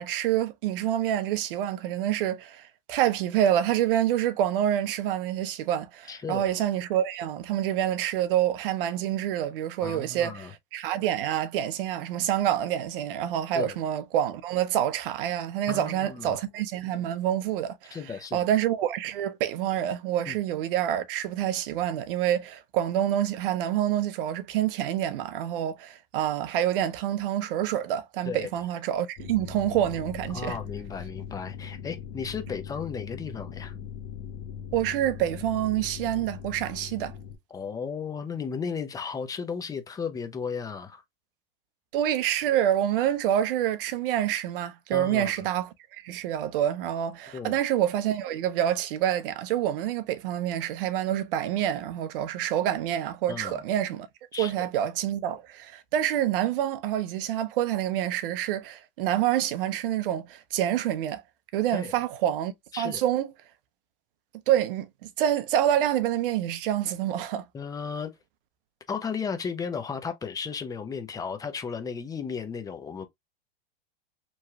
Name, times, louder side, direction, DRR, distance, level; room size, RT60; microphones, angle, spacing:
voice 1, 0.0-18.0 18.3-30.6 34.7-37.1 41.9-45.7 46.0-54.1 54.4-61.2 61.5-63.3 64.5-64.9 65.2-67.4, right 11 dB, 65° right, 0.6 m, -27 dB
voice 2, 6.1-6.4 9.8-10.5 13.5-13.8 15.7-16.4 17.9-18.5 20.3-20.4 28.2-28.5 30.3-33.7 37.5-41.0 44.9-45.3 47.3-47.6 53.3-53.6 54.3-54.7 61.7-61.9 62.7-63.0 67.5-68.1 68.9-73.1, left 6 dB, 10° left, 0.5 m, -34 dB
sound 1, 29.2-37.4, left 8 dB, 40° left, 0.8 m, -40 dB
3.0 x 2.2 x 2.7 m
hypercardioid pair, 105°, 30 cm